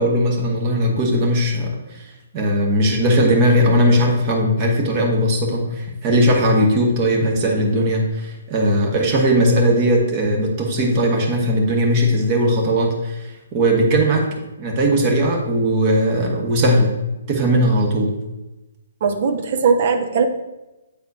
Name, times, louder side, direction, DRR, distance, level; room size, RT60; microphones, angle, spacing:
voice 1, 0.0-2.0 2.3-14.3 14.6-16.9 17.3-18.1, equal, 35° right, 0 dB, 1.3 m, -18 dB
voice 2, 19.0-20.2, right 5 dB, 50° right, 6 dB, 0.7 m, -19 dB
8.4 x 4.1 x 2.7 m, 1.0 s
hypercardioid pair, 135°, 0 cm